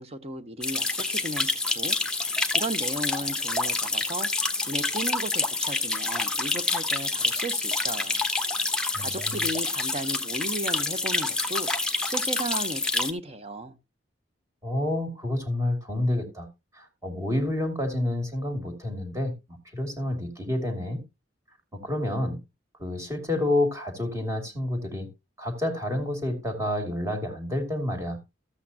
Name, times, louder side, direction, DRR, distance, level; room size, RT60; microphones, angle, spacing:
voice 1, 0.0-2.0 2.5-4.3 4.6-8.2 9.0-11.7 12.0-13.7, right 2 dB, 35° right, 0.9 m, -35 dB
sound 1, 0.6-13.1, left 3 dB, 5° left, 1.0 m, -27 dB
voice 2, 8.9-9.3 14.6-16.5 16.7-19.3 19.7-21.0 21.7-22.4 22.8-25.1 25.4-28.2, left 1 dB, 15° right, 2.5 m, -29 dB
13.5 x 8.4 x 2.8 m
head